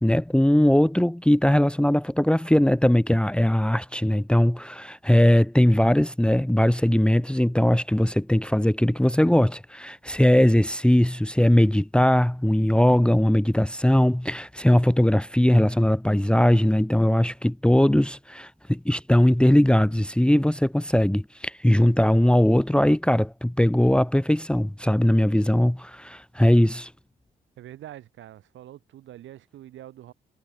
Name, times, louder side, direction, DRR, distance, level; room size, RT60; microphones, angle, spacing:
voice 1, 0.0-26.9, left 1 dB, 5° left, 1.5 m, -20 dB
voice 2, 27.6-30.1, right 13 dB, 70° right, 7.9 m, -44 dB
hypercardioid pair, 45°, 21 cm